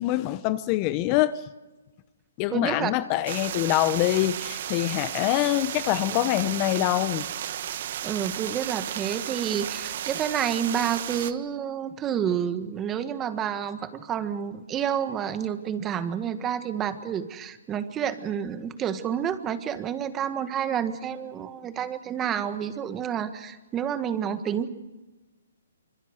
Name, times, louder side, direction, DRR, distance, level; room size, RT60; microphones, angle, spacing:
voice 1, 0.0-1.4 2.4-7.2, left 15 dB, 30° left, 0.9 m, -25 dB
voice 2, 2.5-2.9 8.0-24.7, right 9 dB, 20° right, 1.6 m, -29 dB
sound 1, 3.3-11.3, right 10 dB, 50° right, 1.2 m, -34 dB
25.5 x 24.0 x 6.6 m
hypercardioid pair, 145°, 0 cm